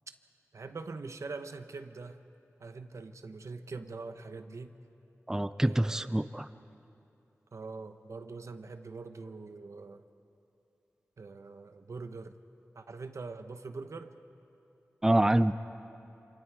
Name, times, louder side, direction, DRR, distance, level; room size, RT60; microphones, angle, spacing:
voice 1, 0.5-2.2 2.6-4.7 5.6-6.2 7.5-10.0 11.2-12.3 12.7-14.2, right 4 dB, 75° right, 9 dB, 1.0 m, -43 dB
voice 2, 5.3-6.5 15.0-15.5, right 1 dB, 10° right, 12 dB, 0.5 m, -26 dB
27.5 x 27.0 x 4.7 m, 2.8 s
wide cardioid pair, 90°, 5 cm